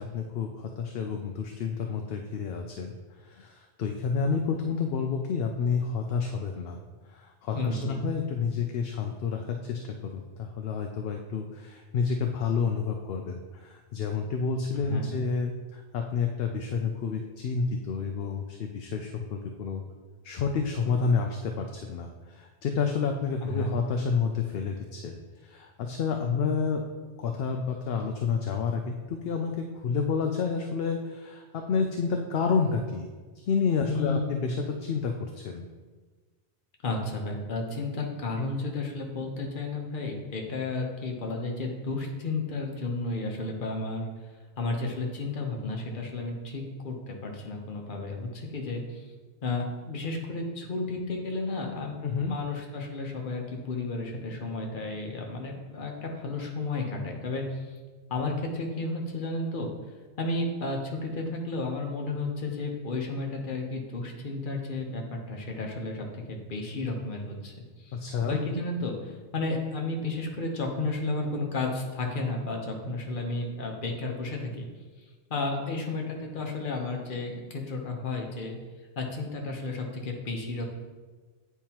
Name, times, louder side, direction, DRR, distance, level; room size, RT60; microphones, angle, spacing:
voice 1, 0.0-2.9 3.3-6.8 7.1-19.8 20.2-25.2 25.4-26.8 27.2-29.6 29.8-33.1 33.4-35.7 52.0-52.3 67.9-68.4, left 5 dB, 65° left, 3 dB, 0.7 m, -29 dB
voice 2, 7.5-8.0 14.8-15.2 23.4-23.7 33.9-34.3 36.8-44.1 44.6-49.0 49.4-52.0 52.2-57.7 58.1-59.7 60.2-67.5 67.8-68.0 68.3-74.7 75.3-78.5 79.0-80.6, left 3 dB, 50° left, 1 dB, 1.0 m, -32 dB
8.8 x 4.6 x 2.9 m, 1.4 s
omnidirectional pair, 1.2 m